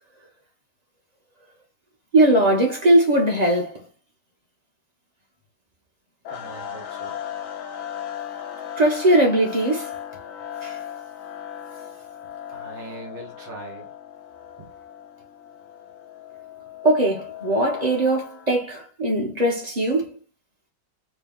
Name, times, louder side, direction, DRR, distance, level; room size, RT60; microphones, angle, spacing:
voice 1, 2.1-3.8 8.8-9.9 10.6-10.8 16.8-20.2, right 1 dB, 30° right, 0.9 m, -20 dB
sound 1, 6.2-18.6, left 10 dB, 60° left, 0.9 m, -37 dB
voice 2, 6.3-7.2 12.5-13.9 14.6-14.7, right 2 dB, 80° right, 1.9 m, -40 dB
4.9 x 2.3 x 3.5 m
omnidirectional pair, 1.9 m